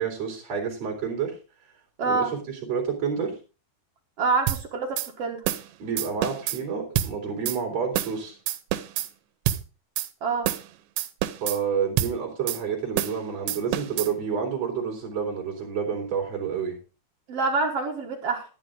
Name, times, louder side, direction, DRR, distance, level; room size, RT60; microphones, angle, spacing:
voice 1, 0.0-1.4 2.0-3.4 5.8-8.4 11.4-16.8, right 6 dB, 40° right, 1 dB, 4.6 m, -29 dB
voice 2, 2.0-2.3 4.2-5.4 10.2-10.5 17.3-18.4, right 4 dB, 70° right, 2 dB, 1.4 m, -26 dB
sound 1, 4.5-4.6 5.0-5.1 5.5-5.7 6.0-6.6 7.0-7.1 7.5-7.6 8.0-8.2 8.5-9.1 9.5-9.6 10.0-10.1 10.5-10.7 11.0-11.6 12.0-12.1 12.5-12.6 13.0-13.2 13.5-14.1, right 13 dB, 85° right, 3.0 m, -27 dB
12.0 x 10.5 x 3.8 m, 0.32 s
omnidirectional pair, 4.9 m